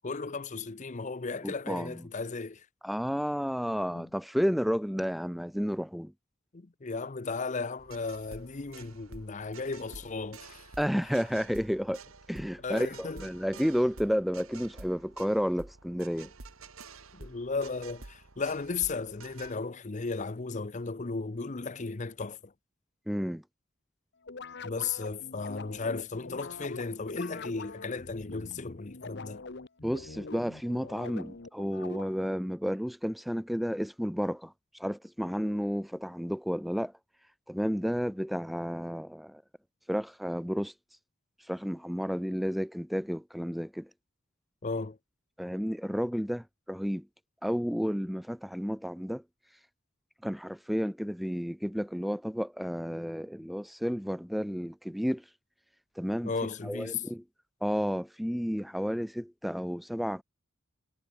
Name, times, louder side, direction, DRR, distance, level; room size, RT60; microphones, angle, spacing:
voice 1, 0.0-2.7 3.9-4.1 6.5-10.7 12.6-13.2 17.1-22.5 24.6-29.4 44.6-45.0 56.2-57.0, left 4 dB, 35° left, 0.7 m, -35 dB
voice 2, 1.4-2.0 2.8-6.1 10.8-12.0 12.3-16.3 23.1-23.4 29.8-36.9 37.5-39.4 39.9-40.7 41.4-43.9 45.4-47.1 47.4-49.2 50.2-55.2 56.0-56.3 56.6-57.2 57.6-60.2, equal, ahead, 0.5 m, -31 dB
sound 1, 7.8-19.6, right 3 dB, 85° right, 2.2 m, -50 dB
sound 2, 24.2-32.4, left 3 dB, 55° left, 1.1 m, -44 dB
head